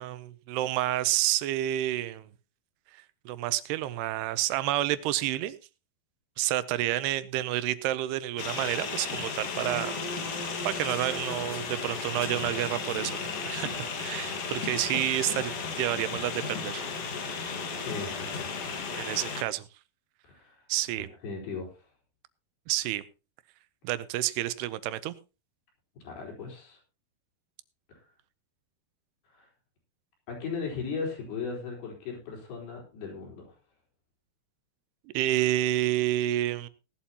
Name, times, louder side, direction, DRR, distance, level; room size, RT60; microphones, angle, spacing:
voice 1, 0.0-2.3 2.9-5.6 6.4-9.9 10.3-10.4 10.6-16.9 19.0-19.7 20.7-21.1 22.7-23.0 23.8-25.1 35.1-36.7, right 14 dB, 85° right, 2.8 m, -29 dB
sound 1, 8.4-19.4, left 5 dB, 50° left, 2.0 m, -34 dB
voice 2, 17.8-18.5 20.2-20.6 21.2-21.7 26.0-26.8 27.9-28.0 29.3-29.5 30.3-33.5, left 5 dB, 75° left, 6.2 m, -37 dB
18.0 x 11.5 x 2.9 m
omnidirectional pair, 4.6 m